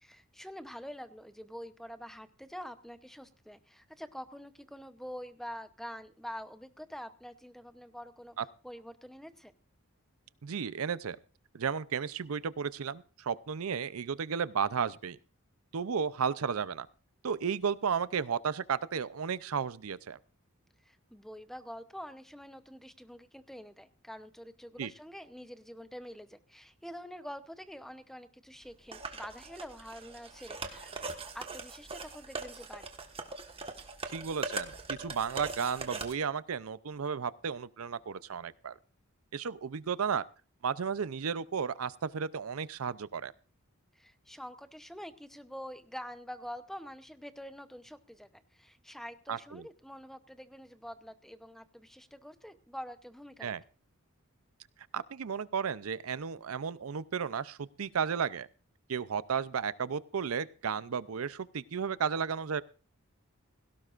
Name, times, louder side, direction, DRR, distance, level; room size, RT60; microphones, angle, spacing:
voice 1, 0.0-8.4 8.6-9.5 20.8-30.9 31.3-32.9 43.9-53.6, equal, ahead, 0.8 m, -46 dB
voice 2, 10.4-11.2 11.5-15.2 15.7-16.9 17.2-20.2 24.8-24.9 34.1-38.7 39.3-40.2 40.6-43.3 49.3-49.6 53.4-53.6 54.9-58.5 58.9-62.6, right 6 dB, 90° right, 0.6 m, -33 dB
sound 1, 28.9-36.1, right 3 dB, 25° right, 1.4 m, -41 dB
17.0 x 17.0 x 2.5 m
head